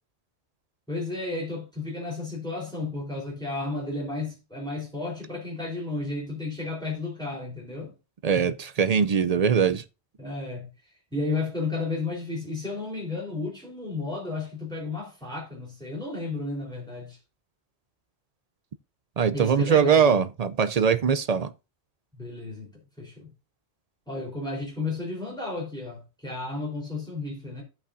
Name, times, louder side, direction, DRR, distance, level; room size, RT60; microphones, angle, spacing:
voice 1, 0.9-7.9 10.2-10.7 11.1-17.2 19.3-20.2 22.1-23.3 24.1-27.6, left 3 dB, 5° left, 3.6 m, -33 dB
voice 2, 8.2-9.8 19.2-21.5, right 7 dB, 50° right, 0.5 m, -22 dB
15.5 x 5.6 x 2.6 m
omnidirectional pair, 1.1 m